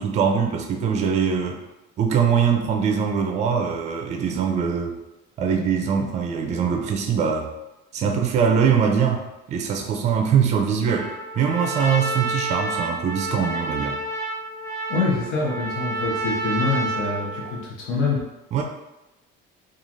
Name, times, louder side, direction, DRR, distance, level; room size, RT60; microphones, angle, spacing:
voice 1, 0.0-1.6 2.0-5.0 5.4-7.5 7.9-14.0 18.5-18.6, right 7 dB, 35° right, 3 dB, 0.4 m, -22 dB
Trumpet, 10.9-17.7, right 2 dB, 15° left, 0.5 m, -29 dB
voice 2, 14.9-18.3, left 3 dB, 75° left, -3 dB, 0.8 m, -25 dB
3.0 x 2.4 x 2.5 m, 0.97 s
cardioid pair, 145°, 21 cm